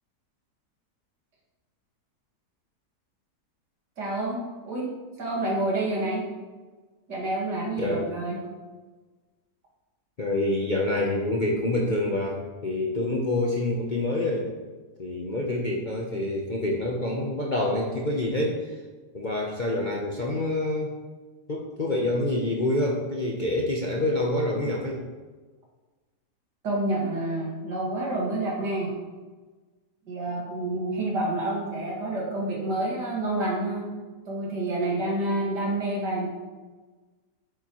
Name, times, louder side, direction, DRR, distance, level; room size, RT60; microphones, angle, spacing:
voice 1, 4.0-4.4 4.6-4.9 5.2-6.2 7.1-8.4 26.6-28.9 30.1-33.9 34.3-36.3, right 2 dB, 75° right, -3 dB, 2.4 m, -28 dB
voice 2, 10.2-14.5 15.0-18.6 19.1-21.0 21.5-25.0, left 1 dB, 40° left, -2 dB, 0.7 m, -27 dB
8.9 x 7.1 x 3.1 m, 1.3 s
omnidirectional pair, 1.8 m